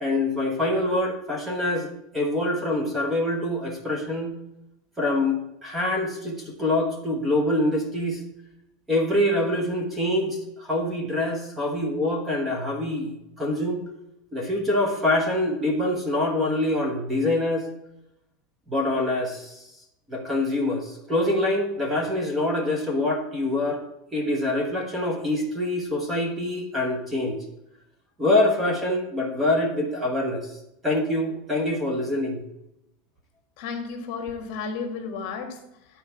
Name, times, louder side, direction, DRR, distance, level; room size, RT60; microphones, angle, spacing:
voice 1, 0.0-4.3 5.0-8.2 8.9-13.8 14.3-17.7 18.7-19.7 20.1-23.8 24.1-27.4 28.2-30.6 30.8-32.4, left 1 dB, 10° right, 1 dB, 1.1 m, -25 dB
voice 2, 33.6-36.0, left 5 dB, 45° left, 4 dB, 1.5 m, -33 dB
10.0 x 4.3 x 5.7 m, 0.85 s
supercardioid pair, 170°, 0 cm